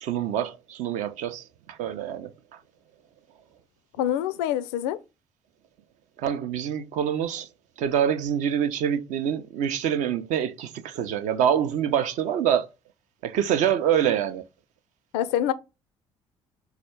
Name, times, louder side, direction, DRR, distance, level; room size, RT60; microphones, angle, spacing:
voice 1, 0.0-2.6 6.2-7.5 7.8-12.6 13.2-14.4, right 9 dB, 55° right, 0.5 m, -26 dB
voice 2, 4.0-5.0 15.1-15.5, left 11 dB, 65° left, 0.4 m, -25 dB
4.0 x 2.4 x 4.4 m
figure-of-eight pair, 50°, 15 cm